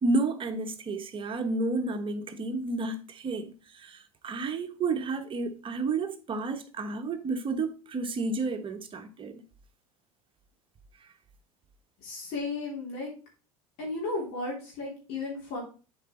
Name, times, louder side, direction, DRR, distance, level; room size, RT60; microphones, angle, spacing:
voice 1, 0.0-9.4, right 3 dB, 30° right, 1.3 m, -31 dB
voice 2, 12.0-13.1 13.8-15.6, left 3 dB, 50° left, 3.3 m, -34 dB
7.4 x 5.0 x 4.4 m
figure-of-eight pair, 75°, 18 cm